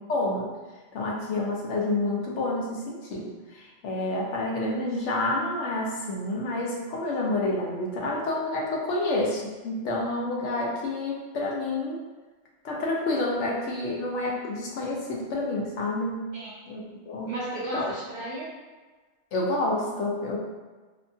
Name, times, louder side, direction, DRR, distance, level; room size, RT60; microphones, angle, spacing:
voice 1, 0.1-0.5 0.9-12.0 12.6-16.2 16.7-17.3 17.7-17.9 19.3-20.4, left 2 dB, 80° left, -2 dB, 0.9 m, -29 dB
voice 2, 17.3-18.5, right 1 dB, 55° right, -7 dB, 0.5 m, -34 dB
2.8 x 2.2 x 2.6 m, 1.3 s
omnidirectional pair, 1.2 m